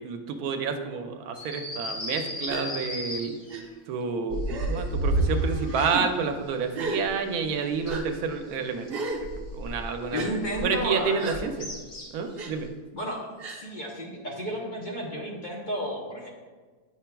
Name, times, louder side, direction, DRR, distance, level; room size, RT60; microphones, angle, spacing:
voice 1, 0.0-3.3 3.9-8.9 9.5-10.3 10.6-11.7 12.1-12.7, right 5 dB, 85° right, 6 dB, 1.1 m, -29 dB
sound 1, 1.4-3.6 11.6-12.3, left 2 dB, 55° left, 1.4 m, -36 dB
Gasp, 2.5-2.7 3.5-3.6 4.5-4.9 5.7-6.0 6.7-7.0 7.9-8.0 8.9-9.2 10.1-10.3 11.2-11.4 12.4-12.5 13.4-13.6, right 3 dB, 50° right, 0.8 m, -34 dB
sound 2, 4.3-6.0 7.0-7.1 7.5-7.6 7.8-8.3 9.1-9.8 10.2-10.8 11.4-11.9 12.6-12.7, right 1 dB, 80° left, 2.8 m, -30 dB
voice 2, 10.1-11.2 12.9-13.2 13.5-16.3, equal, 40° left, -3 dB, 0.8 m, -32 dB
8.8 x 5.6 x 2.2 m, 1.4 s
omnidirectional pair, 1.6 m